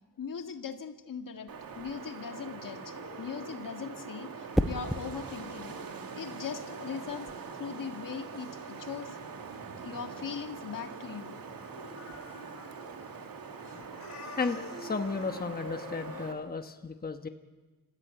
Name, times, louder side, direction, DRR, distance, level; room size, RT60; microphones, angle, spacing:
voice 1, 0.2-1.5 1.8-5.8 6.1-7.3 7.6-9.2 9.8-11.3, left 7 dB, 65° left, 6 dB, 1.8 m, -40 dB
Wind, 1.5-16.3, right 5 dB, 75° right, 2.4 m, -43 dB
sound 1, 1.6-11.2 11.5-13.1 13.5-16.3, left 3 dB, 50° left, 4.0 m, -50 dB
sound 2, 1.7-2.1 4.5-5.1 7.1-7.3, equal, ahead, 1.1 m, -30 dB
voice 2, 14.4-17.3, left 4 dB, 25° left, 7 dB, 1.2 m, -34 dB
27.0 x 15.0 x 8.9 m, 1.3 s
cardioid pair, 80°, 36 cm